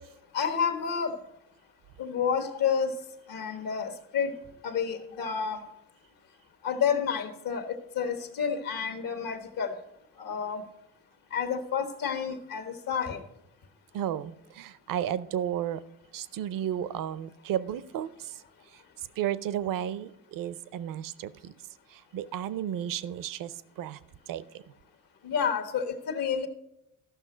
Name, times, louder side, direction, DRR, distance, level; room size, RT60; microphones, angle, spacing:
voice 1, 0.3-1.1 2.0-2.9 3.3-4.4 4.6-5.6 6.6-9.7 10.2-10.6 11.3-13.2 25.2-26.5, left 7 dB, 75° left, 7 dB, 1.4 m, -30 dB
voice 2, 13.9-15.8 16.1-18.4 18.7-21.5 21.9-24.0 24.3-24.6, right 10 dB, 70° right, 17 dB, 0.6 m, -33 dB
13.5 x 6.0 x 5.0 m, 0.83 s
cardioid pair, 85°, 34 cm